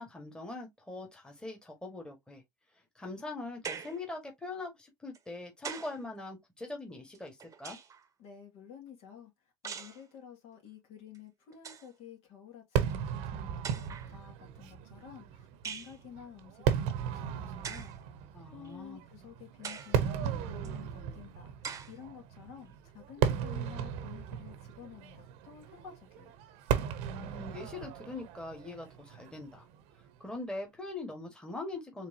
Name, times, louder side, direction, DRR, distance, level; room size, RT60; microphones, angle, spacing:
voice 1, 0.0-2.4 2.9-7.8 18.3-19.0 27.0-29.7 30.2-32.1, left 2 dB, 10° left, 1.5 m, -42 dB
sound 1, 3.6-4.1 5.1-6.0 7.1-8.1 9.6-10.0 11.1-11.2 11.5-11.9 12.9-13.0 13.6-14.1 15.6-16.0 17.6-18.0 18.6-18.7 19.6-20.0 20.6-20.7 21.6-22.0, right 7 dB, 30° right, 0.8 m, -42 dB
voice 2, 8.2-9.3 9.6-17.9 18.5-26.4, left 8 dB, 70° left, 2.2 m, -51 dB
Fireworks, 12.8-30.1, right 8 dB, 75° right, 0.8 m, -36 dB
4.5 x 3.3 x 2.7 m
supercardioid pair, 110°, 11 cm